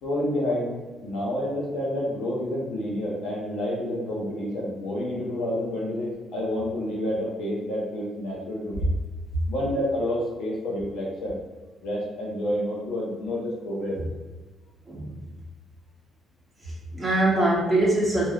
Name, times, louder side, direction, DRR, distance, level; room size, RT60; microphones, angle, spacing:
voice 1, 0.0-8.8 9.5-11.4 11.8-14.0, left 1 dB, 85° left, -4 dB, 0.7 m, -29 dB
voice 2, 16.6-18.3, right 1 dB, 10° right, -7 dB, 0.9 m, -23 dB
3.2 x 2.6 x 2.3 m, 1.2 s
cardioid pair, 90°, 0 cm